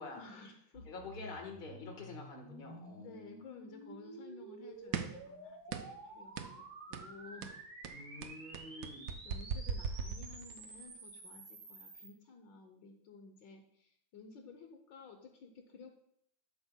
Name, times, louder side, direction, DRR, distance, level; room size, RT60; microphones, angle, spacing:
voice 1, 0.2-0.9 1.2-1.4 3.0-7.6 8.8-8.9 9.2-15.9, left 4 dB, 70° left, 4 dB, 1.5 m, -54 dB
sound 1, 0.7-12.1, right 2 dB, 55° right, 2.0 m, -51 dB
voice 2, 0.8-3.4 7.9-9.1, left 3 dB, 30° left, 1 dB, 1.4 m, -47 dB
sound 2, 4.9-5.3 5.7-6.0 6.4-6.6 6.9-7.1 7.4-10.7, right 7 dB, 75° right, 0.8 m, -39 dB
11.0 x 8.0 x 2.2 m, 0.70 s
omnidirectional pair, 2.1 m